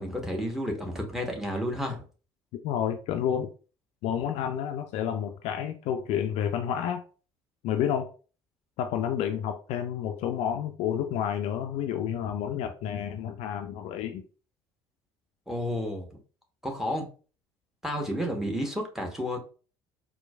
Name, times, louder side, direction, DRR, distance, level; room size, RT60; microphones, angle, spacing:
voice 1, 0.0-2.0 15.5-16.1 16.6-17.1 17.8-19.4, equal, 5° right, 2 dB, 0.9 m, -31 dB
voice 2, 2.6-3.5 4.0-7.0 7.6-8.1 8.8-14.2, left 9 dB, 50° left, 6 dB, 0.4 m, -30 dB
4.3 x 2.1 x 2.3 m, 0.37 s
figure-of-eight pair, 55°, 13 cm